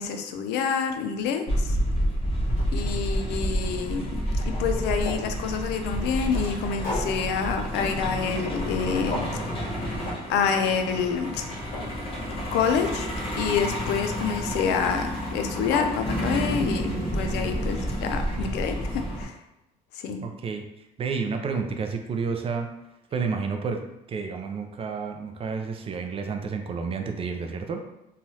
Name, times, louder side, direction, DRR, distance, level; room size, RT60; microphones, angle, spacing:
voice 1, 0.0-1.8 2.7-4.2 4.6-9.2 10.3-11.4 12.5-13.1 13.4-19.3 19.9-20.2, left 6 dB, 80° left, 6 dB, 0.4 m, -27 dB
Truck, 1.5-19.2, equal, 35° left, 1.0 m, -29 dB
sound 1, 1.6-1.7 2.2-3.7 3.9-5.3 5.8-8.8 9.1-9.4 10.0-10.2 10.5-10.9 11.3-12.9 14.4-14.8 15.2-15.3 15.6-15.9, left 2 dB, 55° left, 1.3 m, -37 dB
voice 2, 20.2-20.6 21.0-22.7 23.1-27.8, right 5 dB, 35° right, 5 dB, 0.4 m, -30 dB
3.1 x 2.3 x 2.7 m, 0.89 s
cardioid pair, 110°, 17 cm